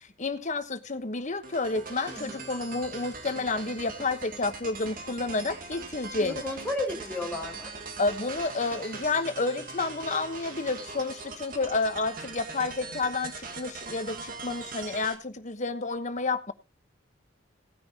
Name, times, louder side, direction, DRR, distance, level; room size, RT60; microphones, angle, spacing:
voice 1, 0.0-6.4 8.0-16.5, left 3 dB, 40° left, 1.1 m, -30 dB
sound 1, 1.4-15.1, right 4 dB, 50° right, 2.0 m, -41 dB
voice 2, 2.1-2.4 6.2-7.7, left 2 dB, 10° left, 4.6 m, -33 dB
18.0 x 9.5 x 2.9 m
head